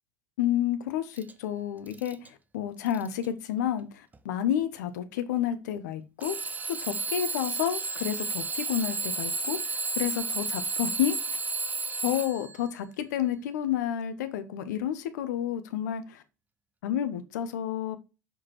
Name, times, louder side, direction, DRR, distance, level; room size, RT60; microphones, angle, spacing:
voice 1, 0.4-6.4 6.7-11.4 12.0-16.2 16.8-18.0, left 10 dB, 70° left, 1.1 m, -30 dB
Alarm / Clock, 1.2-1.3 1.9-2.3 2.9-3.3 4.1-4.2 6.2-12.6, right 4 dB, 15° right, 0.7 m, -32 dB
6.7 x 5.0 x 4.4 m
hypercardioid pair, 80°, 10 cm